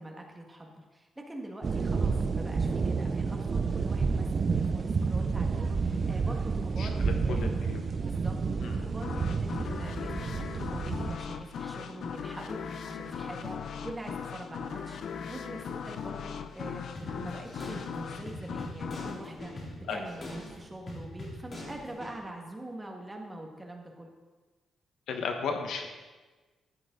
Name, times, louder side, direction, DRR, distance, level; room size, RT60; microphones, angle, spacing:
voice 1, 0.0-7.5 8.0-24.1, right 1 dB, 15° right, 1 dB, 1.7 m, -44 dB
sound 1, 1.6-11.2, right 4 dB, 40° right, 0.6 m, -30 dB
voice 2, 6.8-7.8 8.6-8.8 19.9-20.0 25.1-25.9, left 5 dB, 80° left, 4 dB, 1.4 m, -35 dB
sound 2, 9.0-20.5, left 7 dB, 65° left, 0.7 m, -39 dB
sound 3, 16.9-22.2, left 1 dB, 40° left, 3.2 m, -43 dB
14.0 x 9.5 x 3.9 m, 1.3 s
cardioid pair, 130°, 0 cm